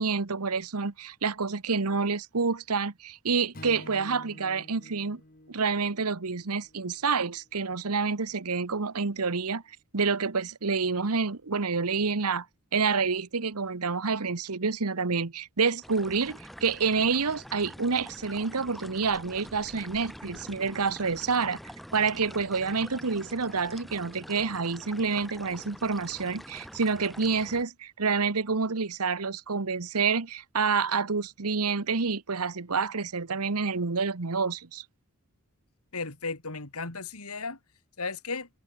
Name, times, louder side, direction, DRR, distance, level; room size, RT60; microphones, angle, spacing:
voice 1, 0.0-5.2 5.5-9.6 9.9-12.5 12.7-21.6 21.9-34.8, right 5 dB, 90° right, 1.2 m, -28 dB
Strum, 3.5-7.9, left 1 dB, 40° left, 3.0 m, -50 dB
sound 1, 15.8-27.6, equal, ahead, 7.2 m, -46 dB
voice 2, 35.9-37.6 38.0-38.5, left 4 dB, 80° left, 3.5 m, -35 dB
head